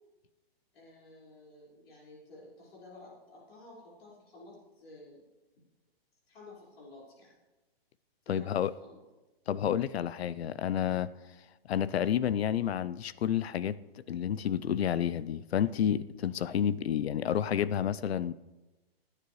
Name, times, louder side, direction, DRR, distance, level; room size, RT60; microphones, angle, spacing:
voice 1, 0.7-5.2 6.3-7.3 8.2-9.0, left 2 dB, 70° left, -5 dB, 5.0 m, -52 dB
voice 2, 8.3-8.7 9.5-11.1 11.7-13.8 14.1-18.3, left 9 dB, 85° left, 17 dB, 0.6 m, -30 dB
20.0 x 9.9 x 3.2 m, 1.1 s
hypercardioid pair, 170°, 30 cm